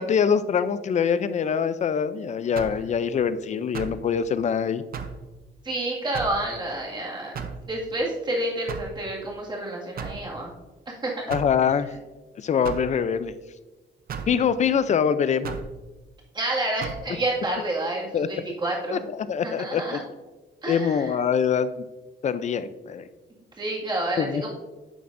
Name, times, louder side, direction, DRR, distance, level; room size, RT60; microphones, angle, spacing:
voice 1, 0.0-4.8 11.3-11.9 12.4-13.3 14.3-15.5 18.1-18.3 18.9-20.0 20.7-21.8 22.2-23.0 24.2-24.5, left 7 dB, 40° left, 13 dB, 0.4 m, -24 dB
sound 1, 2.6-2.9 3.7-4.0 4.9-5.2 6.1-6.4 7.3-7.6 8.7-9.0 10.0-10.3 11.3-11.6 12.6-12.9 14.1-14.4 15.4-15.7 16.8-17.0, right 6 dB, 50° right, 0.7 m, -34 dB
voice 2, 5.6-7.3 7.7-10.5 10.9-11.2 16.3-19.0 19.4-20.0 20.6-21.1 23.6-24.5, right 1 dB, 25° right, -3 dB, 2.0 m, -29 dB
10.0 x 6.9 x 2.6 m, 1.2 s
cardioid pair, 140°, 19 cm